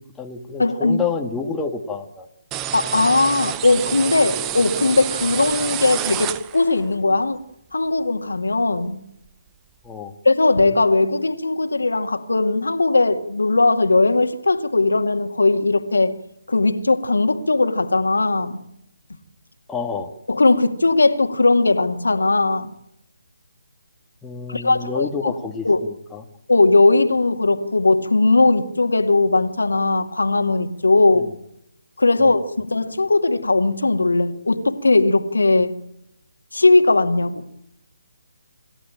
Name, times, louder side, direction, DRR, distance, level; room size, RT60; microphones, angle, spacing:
voice 1, 0.0-2.3 9.8-10.1 19.7-20.1 24.2-26.2 31.1-31.3 32.2-32.3, left 5 dB, 10° left, 1.7 m, -29 dB
voice 2, 0.6-1.0 2.7-7.4 7.7-9.0 10.2-16.1 16.5-18.6 20.3-22.7 24.5-25.3 25.7-25.8 26.5-31.3 32.0-35.7 36.5-37.4, left 3 dB, 75° left, 2.1 m, -18 dB
sound 1, 2.5-6.8, right 12 dB, 15° right, 0.8 m, -28 dB
27.5 x 14.5 x 9.0 m
figure-of-eight pair, 145°, 0 cm